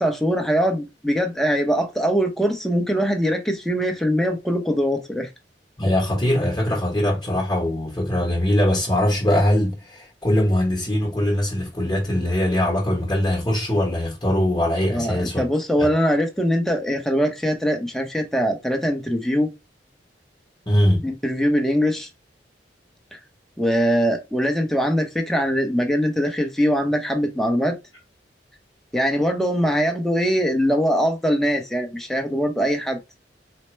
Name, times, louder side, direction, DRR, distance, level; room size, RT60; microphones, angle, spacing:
voice 1, 0.0-5.3 14.9-19.5 21.0-22.1 23.1-23.2 23.6-27.8 28.9-33.0, equal, ahead, 0.7 m, -22 dB
voice 2, 5.8-15.4 15.8-15.9 20.7-21.1, left 1 dB, 20° left, 1.0 m, -21 dB
4.3 x 2.1 x 3.1 m
head